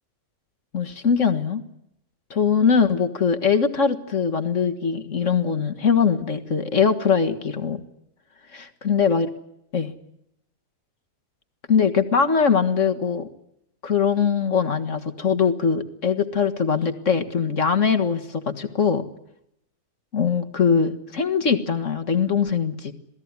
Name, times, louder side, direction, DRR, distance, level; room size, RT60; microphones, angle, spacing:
voice 1, 0.7-1.6 2.3-7.8 8.9-9.3 9.7-9.9 11.7-13.3 13.8-19.0 20.1-22.9, left 6 dB, 50° left, 7 dB, 2.0 m, -21 dB
27.0 x 18.5 x 9.7 m, 0.79 s
omnidirectional pair, 1.6 m